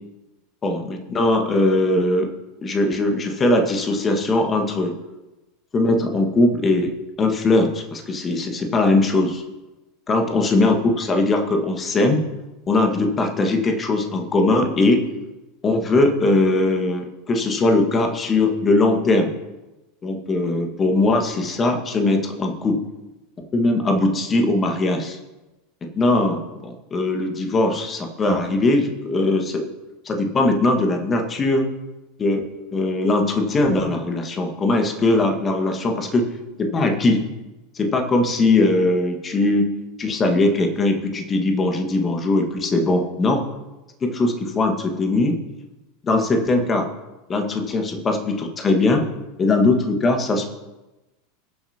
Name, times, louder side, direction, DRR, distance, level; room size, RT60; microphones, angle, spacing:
voice 1, 0.6-2.3 2.6-5.0 5.7-9.4 10.1-12.2 12.7-15.0 15.6-19.3 20.0-22.8 23.5-25.2 25.8-29.6 30.0-31.7 32.2-32.4 32.7-36.3 36.6-37.2 37.7-39.7 40.0-43.4 44.0-45.4 46.0-46.9 47.3-49.0 49.4-50.5, left 2 dB, 25° left, 4 dB, 1.7 m, -20 dB
20.0 x 7.4 x 2.9 m, 1.1 s
figure-of-eight pair, 80°, 0 cm